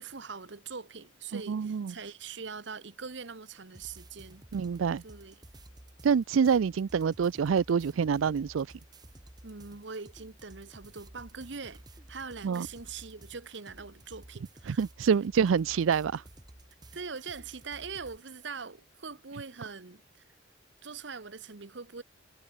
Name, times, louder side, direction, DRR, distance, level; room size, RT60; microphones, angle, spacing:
voice 1, 0.0-4.4 5.0-5.4 9.4-11.8 12.1-15.3 16.9-20.2 20.8-22.0, right 5 dB, 65° right, 1.1 m, -42 dB
voice 2, 1.3-1.9 4.5-5.0 6.0-8.7 12.4-12.7 14.7-16.2, right 6 dB, 90° right, 0.4 m, -26 dB
sound 1, 3.7-18.2, right 1 dB, 20° right, 1.4 m, -53 dB
head